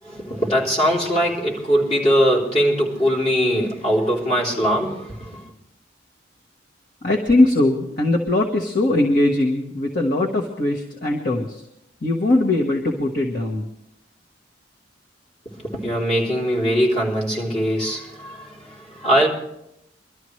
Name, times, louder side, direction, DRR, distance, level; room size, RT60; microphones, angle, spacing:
voice 1, 0.0-5.5 15.5-19.3, equal, 35° left, 3.6 m, -21 dB
voice 2, 7.0-11.6 12.0-13.7, left 2 dB, 50° left, 1.5 m, -20 dB
23.5 x 13.0 x 3.2 m
head